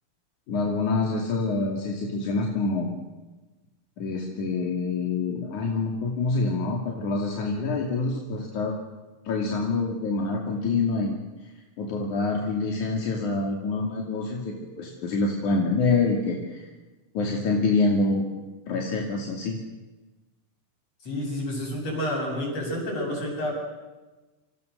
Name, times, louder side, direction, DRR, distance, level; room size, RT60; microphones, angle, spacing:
voice 1, 0.5-2.9 4.0-8.7 9.2-11.2 11.8-16.6 17.1-18.2 18.7-19.6, left 3 dB, 45° left, 0 dB, 3.0 m, -26 dB
voice 2, 21.0-23.5, left 1 dB, 30° left, 0 dB, 8.6 m, -29 dB
28.5 x 25.5 x 6.6 m, 1.2 s
omnidirectional pair, 6.0 m